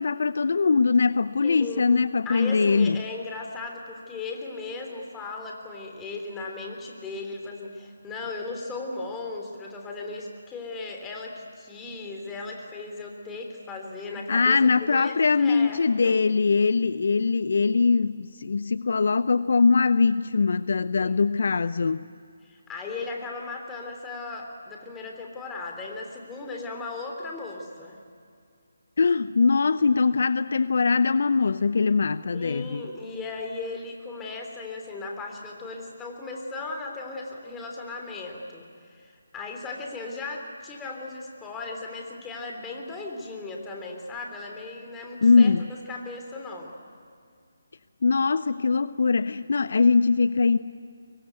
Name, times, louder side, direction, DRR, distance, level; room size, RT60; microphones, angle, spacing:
voice 1, 0.0-3.0 14.3-22.0 29.0-32.9 45.2-45.6 48.0-50.6, left 4 dB, 60° left, 15 dB, 0.6 m, -22 dB
voice 2, 1.4-16.2 21.0-21.6 22.4-28.0 32.3-45.5 45.9-46.7, left 3 dB, 10° left, 1 dB, 3.4 m, -37 dB
24.0 x 23.0 x 9.4 m, 2.3 s
figure-of-eight pair, 150°, 0 cm